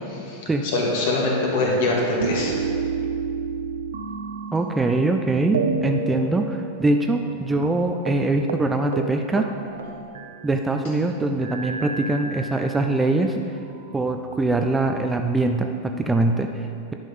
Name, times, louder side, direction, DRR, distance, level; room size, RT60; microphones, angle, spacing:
voice 1, 0.1-2.5, left 2 dB, 50° left, -2 dB, 2.0 m, -23 dB
sound 1, 2.2-5.2 5.5-7.4 7.6-7.7 8.1-8.2 8.5-8.7 8.9-10.7 11.4-13.0 13.7-14.6, right 4 dB, 65° right, 0.5 m, -30 dB
voice 2, 4.5-9.4 10.4-13.4 13.9-16.9, right 2 dB, 10° right, 4 dB, 0.4 m, -23 dB
10.5 x 5.4 x 5.4 m, 2.5 s
figure-of-eight pair, 90°, 0 cm